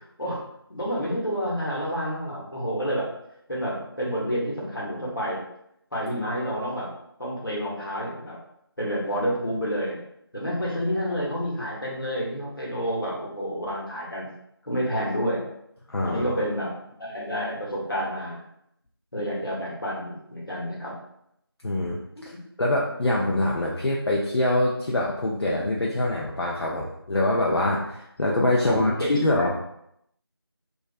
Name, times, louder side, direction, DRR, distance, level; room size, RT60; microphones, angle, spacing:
voice 1, 0.7-3.1 3.5-5.4 5.9-6.9 7.2-8.4 8.8-10.0 10.3-14.3 14.6-15.5 16.0-16.7 17.0-18.4 19.1-20.9 22.2-22.3 28.6-28.8 29.3-29.5, equal, 55° left, -5 dB, 0.9 m, -29 dB
voice 2, 15.9-16.4 21.6-22.3 22.6-29.5, left 1 dB, 75° left, -3 dB, 0.4 m, -24 dB
2.3 x 2.2 x 2.4 m, 0.77 s
figure-of-eight pair, 175°, 13 cm